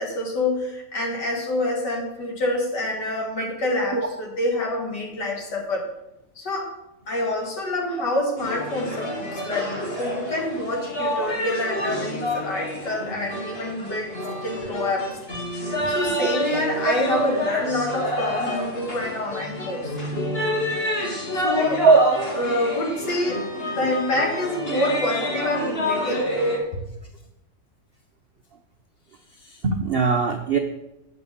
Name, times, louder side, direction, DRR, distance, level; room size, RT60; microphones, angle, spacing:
voice 1, 0.0-5.9 6.4-6.7 7.1-14.1 14.4-15.1 15.9-19.9 21.3-21.8 22.3-26.3, left 1 dB, 70° left, 0 dB, 2.6 m, -27 dB
sound 1, 8.4-26.6, equal, 35° left, 1.9 m, -28 dB
voice 2, 15.8-16.9 21.8-22.1 29.4-30.6, right 4 dB, 65° right, 4 dB, 0.5 m, -21 dB
8.4 x 5.4 x 7.0 m, 0.89 s
omnidirectional pair, 1.9 m